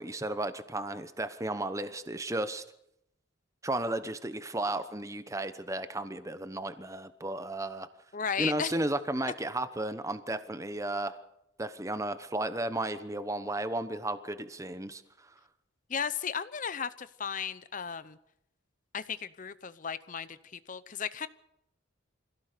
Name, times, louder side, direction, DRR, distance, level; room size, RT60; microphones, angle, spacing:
voice 1, 0.0-2.6 3.6-7.9 8.4-11.2 11.6-15.0, right 1 dB, 15° right, 11 dB, 1.0 m, -34 dB
voice 2, 8.1-8.7 15.9-18.2 18.9-21.3, left 7 dB, 40° left, 15 dB, 0.7 m, -35 dB
26.0 x 16.5 x 6.8 m, 0.80 s
head